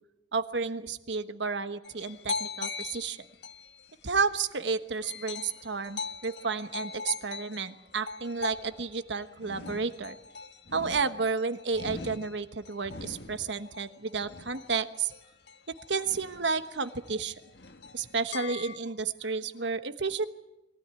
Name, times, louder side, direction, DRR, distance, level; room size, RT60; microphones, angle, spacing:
voice 1, 0.3-3.2 4.0-10.2 10.7-15.1 15.9-17.3 17.9-20.3, right 4 dB, 80° right, 10 dB, 1.2 m, -31 dB
sound 1, 1.8-4.6 5.0-18.8, left 4 dB, 70° left, 1.5 m, -41 dB
22.5 x 16.5 x 9.8 m, 0.93 s
head